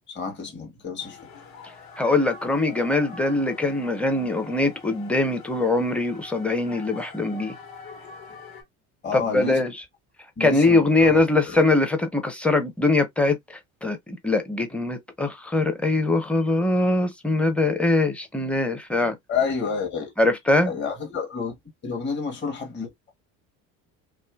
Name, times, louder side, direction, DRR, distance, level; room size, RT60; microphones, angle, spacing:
voice 1, 0.1-1.2 9.0-9.6 10.4-11.6 19.3-20.1 20.7-21.5 21.8-23.1, left 5 dB, 25° left, 1.1 m, -30 dB
sound 1, 1.0-8.6, left 4 dB, 55° left, 1.3 m, -44 dB
voice 2, 2.0-7.5 9.1-9.7 10.4-19.1 20.2-20.7, left 2 dB, 5° left, 0.7 m, -22 dB
2.6 x 2.5 x 2.2 m
supercardioid pair, 80°, 42 cm